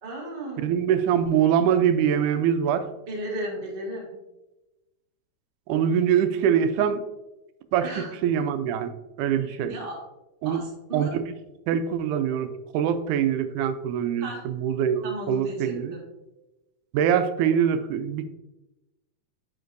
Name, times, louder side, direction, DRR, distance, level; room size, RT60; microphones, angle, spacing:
voice 1, 0.0-0.7 3.0-4.1 7.8-8.1 9.4-10.0 10.4-11.1 14.2-14.4 15.0-16.0, right 1 dB, 25° right, -2 dB, 1.2 m, -35 dB
voice 2, 0.6-2.9 5.7-7.0 7.7-7.9 8.2-8.9 9.2-9.7 10.4-10.6 10.9-11.2 11.7-16.0 16.9-18.2, right 8 dB, 90° right, 9 dB, 2.1 m, -23 dB
9.4 x 5.3 x 2.6 m, 1.0 s
omnidirectional pair, 3.5 m